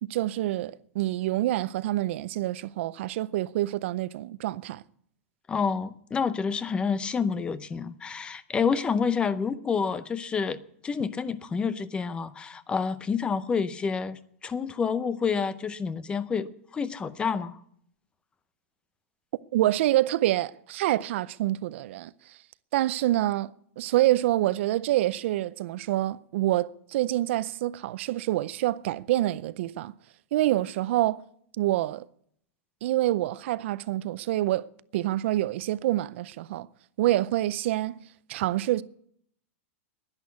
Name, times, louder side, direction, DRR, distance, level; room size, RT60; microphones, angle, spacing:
voice 1, 0.0-4.8 19.5-22.4 22.7-30.0 30.3-31.2 31.6-32.1 32.8-34.7 34.9-36.7 37.0-38.0 38.3-38.8, right 15 dB, 60° right, 0.5 m, -27 dB
voice 2, 5.5-10.6 10.8-17.6, left 5 dB, 15° left, 0.6 m, -28 dB
11.0 x 10.5 x 9.3 m
supercardioid pair, 150°, 8 cm